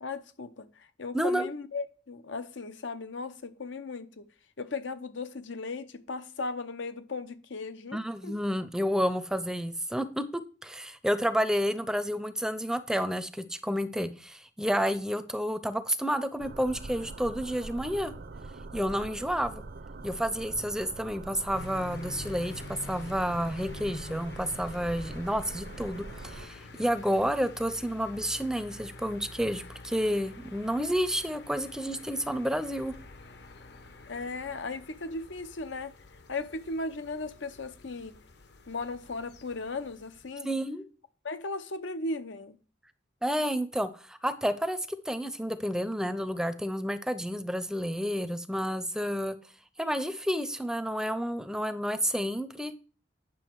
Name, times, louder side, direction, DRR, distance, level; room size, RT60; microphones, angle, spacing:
voice 1, 0.0-4.2 4.6-8.0 8.2-8.3 34.1-35.9 36.3-38.1 38.7-40.5 41.2-42.6, left 3 dB, 90° left, 0.9 m, -37 dB
voice 2, 1.1-1.5 7.9-18.1 18.7-19.6 20.0-32.9 40.4-40.8 43.2-49.4 49.8-52.7, equal, 5° right, 0.5 m, -30 dB
sound 1, 16.4-26.5, right 3 dB, 55° right, 0.6 m, -43 dB
sound 2, 21.5-40.3, left 2 dB, 65° left, 0.9 m, -47 dB
9.4 x 5.9 x 4.6 m
head